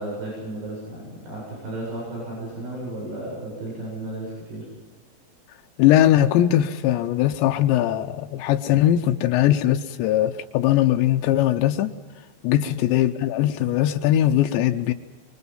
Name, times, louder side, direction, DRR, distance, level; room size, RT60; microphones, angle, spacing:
voice 1, 0.0-4.7 12.5-12.7, right 1 dB, 70° right, -3 dB, 10.5 m, -34 dB
voice 2, 5.8-11.9 12.4-14.9, left 12 dB, 85° left, 5 dB, 3.1 m, -20 dB
25.0 x 23.5 x 5.7 m, 1.3 s
omnidirectional pair, 5.0 m